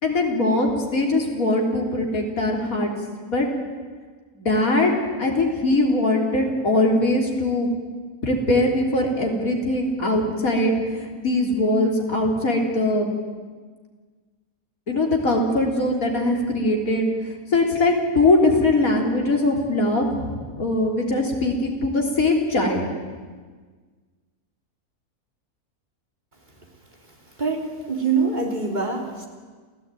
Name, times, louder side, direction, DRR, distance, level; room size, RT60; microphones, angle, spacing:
voice 1, 0.0-2.9 3.3-3.5 4.4-7.7 8.2-13.1 14.9-17.1 17.5-22.9, left 2 dB, 70° left, 1 dB, 4.0 m, -21 dB
voice 2, 27.4-29.3, right 4 dB, 30° right, 1 dB, 3.5 m, -24 dB
28.0 x 15.5 x 9.2 m, 1.5 s
omnidirectional pair, 1.5 m